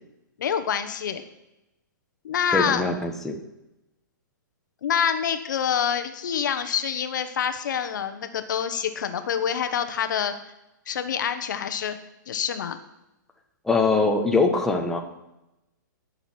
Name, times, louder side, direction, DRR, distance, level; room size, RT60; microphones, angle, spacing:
voice 1, 0.4-1.2 2.2-2.8 4.8-10.3 10.9-12.0 12.3-12.8, left 8 dB, 70° left, 9 dB, 1.2 m, -26 dB
voice 2, 2.5-3.4 13.6-15.0, left 3 dB, 5° left, 1 dB, 1.2 m, -22 dB
18.5 x 6.9 x 4.5 m, 0.92 s
hypercardioid pair, 145°, 11 cm